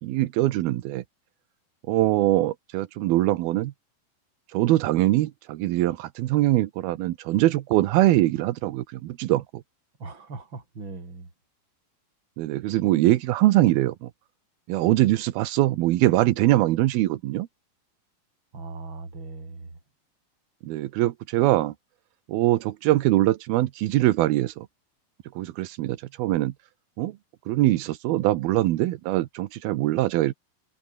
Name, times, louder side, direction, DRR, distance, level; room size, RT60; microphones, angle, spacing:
voice 1, 0.0-1.0 1.9-3.7 4.5-9.6 12.4-14.1 14.7-17.5 20.6-21.7 22.3-24.7 25.4-26.5 27.0-27.2 27.5-30.3, right 16 dB, 85° right, 2.9 m, -23 dB
voice 2, 10.0-11.3 18.5-19.7, right 3 dB, 30° right, 6.3 m, -39 dB
omnidirectional pair, 4.2 m